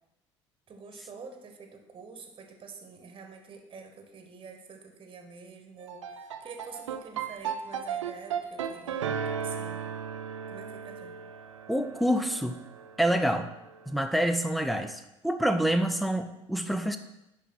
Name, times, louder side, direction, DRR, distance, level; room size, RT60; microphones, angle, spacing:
voice 1, 0.7-9.8 10.5-11.2, right 5 dB, 35° right, 5 dB, 1.3 m, -47 dB
sound 1, 5.8-14.1, right 7 dB, 80° right, 0.6 m, -36 dB
voice 2, 11.7-12.6 13.0-13.5 13.9-17.0, equal, ahead, 9 dB, 0.7 m, -27 dB
10.0 x 3.6 x 5.8 m, 0.91 s
figure-of-eight pair, 60°, 16 cm